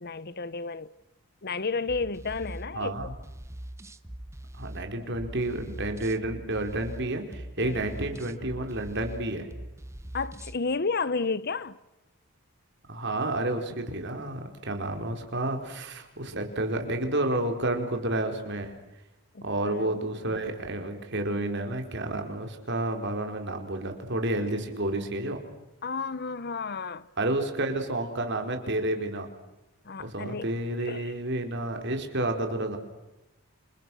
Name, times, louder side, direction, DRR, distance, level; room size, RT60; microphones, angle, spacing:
voice 1, 0.0-0.9 1.4-2.9 7.6-7.8 10.1-11.8 19.3-20.0 20.3-20.4 25.8-27.1 29.8-30.5 30.9-31.1, left 4 dB, 45° left, 0.8 m, -32 dB
sound 1, 1.9-10.6, right 1 dB, 10° right, 0.9 m, -42 dB
voice 2, 2.7-3.1 4.6-9.5 12.9-18.7 19.4-25.4 27.2-29.3 30.0-32.8, right 1 dB, 50° right, 4.3 m, -30 dB
29.0 x 28.5 x 6.3 m
head